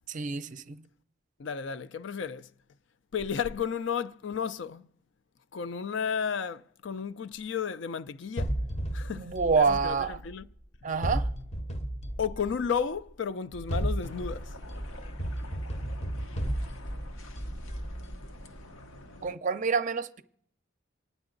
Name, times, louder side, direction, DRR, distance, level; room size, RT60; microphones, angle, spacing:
voice 1, 0.1-0.9 9.2-10.2 10.8-11.3 19.2-20.2, right 5 dB, 40° right, 0.5 m, -27 dB
voice 2, 1.4-2.5 3.1-4.9 5.5-8.6 8.9-10.5 12.2-14.5, left 7 dB, 65° left, 0.4 m, -33 dB
sound 1, 8.4-10.5 11.0-12.8 13.5-18.6, right 1 dB, 30° left, 0.7 m, -34 dB
sound 2, 14.0-19.4, left 2 dB, 85° left, 1.0 m, -49 dB
26.5 x 9.6 x 3.9 m
head